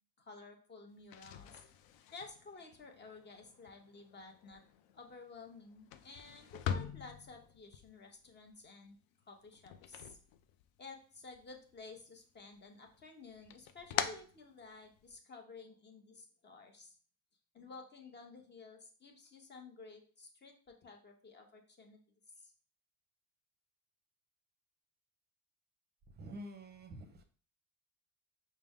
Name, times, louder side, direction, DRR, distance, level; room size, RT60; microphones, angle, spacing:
voice 1, 0.2-1.6 2.1-4.6 4.9-9.0 9.3-10.2 10.8-17.0 17.5-22.0 22.4-22.5, left 4 dB, 25° left, 0.8 m, -53 dB
sound 1, 1.0-11.0 11.3-12.2 12.5-15.2, left 9 dB, 60° left, 0.5 m, -44 dB
voice 2, 26.1-27.2, right 1 dB, 25° right, 0.7 m, -48 dB
4.9 x 2.2 x 3.6 m
supercardioid pair, 105°, 41 cm